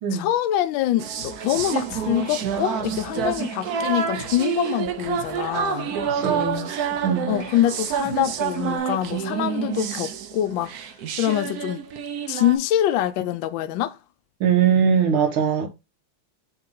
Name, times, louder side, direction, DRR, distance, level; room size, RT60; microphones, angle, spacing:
voice 1, 0.1-5.9 7.3-10.7 11.2-11.8 12.3-14.0, left 12 dB, 75° left, 1.3 m, -24 dB
sound 1, 1.0-12.6, right 8 dB, 65° right, 1.0 m, -28 dB
sound 2, 1.2-8.8, right 3 dB, 45° right, 2.3 m, -40 dB
voice 2, 6.0-6.7 7.0-7.4 14.4-15.7, right 7 dB, 85° right, 1.9 m, -21 dB
6.6 x 2.9 x 5.3 m
omnidirectional pair, 2.3 m